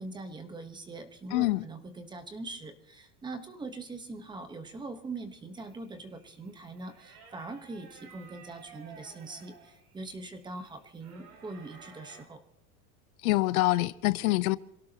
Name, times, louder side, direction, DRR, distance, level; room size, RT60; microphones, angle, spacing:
voice 1, 0.0-12.4, right 3 dB, 10° right, 1.1 m, -42 dB
voice 2, 1.3-1.6 13.2-14.6, left 18 dB, 75° left, 0.7 m, -25 dB
sound 1, 5.5-12.2, right 5 dB, 90° right, 5.9 m, -55 dB
27.5 x 17.0 x 2.9 m
supercardioid pair, 160°, 44 cm